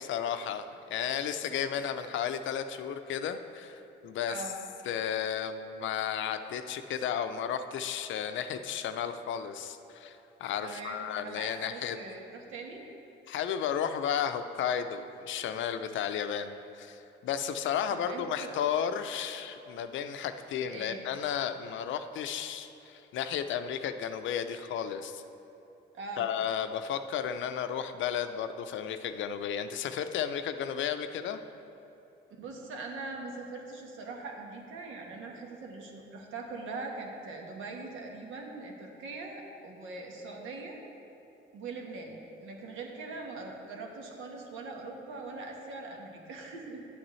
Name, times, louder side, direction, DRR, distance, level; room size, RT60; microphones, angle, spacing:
voice 1, 0.0-4.4 4.9-12.0 13.3-25.2 26.2-31.4, left 8 dB, 75° left, 9 dB, 0.5 m, -33 dB
voice 2, 4.3-4.6 10.6-12.9 17.9-18.5 20.6-21.0 25.9-26.3 32.4-40.8 41.5-46.9, right 3 dB, 80° right, 0 dB, 1.3 m, -42 dB
9.7 x 8.8 x 3.1 m, 2.9 s
cardioid pair, 90°, 20 cm